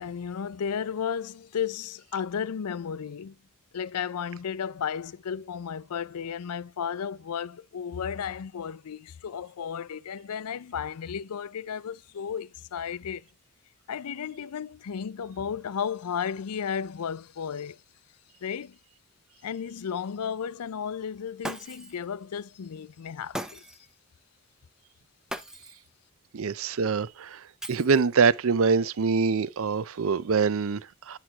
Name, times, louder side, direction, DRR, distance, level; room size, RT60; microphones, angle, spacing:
voice 1, 0.0-3.4 3.7-13.2 13.9-17.8 18.4-18.8 19.4-23.6, left 7 dB, 85° left, 0.4 m, -34 dB
Shatter, 21.4-22.0 23.3-23.9 25.3-25.9 27.6-28.3, right 1 dB, 5° right, 0.6 m, -38 dB
voice 2, 26.3-31.2, right 5 dB, 65° right, 0.5 m, -25 dB
9.8 x 6.0 x 2.9 m
head